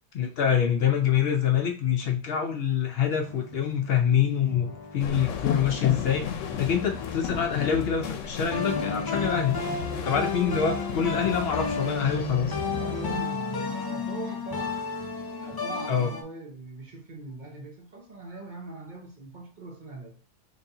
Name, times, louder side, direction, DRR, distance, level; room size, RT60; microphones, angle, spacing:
voice 1, 0.1-9.6 10.0-12.6 15.9-16.1, left 8 dB, 65° left, 0.7 m, -25 dB
sound 1, 3.2-5.8 6.5-8.0 8.5-16.2, left 3 dB, 35° left, 0.4 m, -33 dB
sound 2, 5.0-13.2, left 8 dB, 90° left, 0.9 m, -34 dB
voice 2, 12.7-14.9 15.4-20.2, right 2 dB, 45° right, 0.9 m, -41 dB
3.9 x 3.3 x 2.7 m
omnidirectional pair, 1.2 m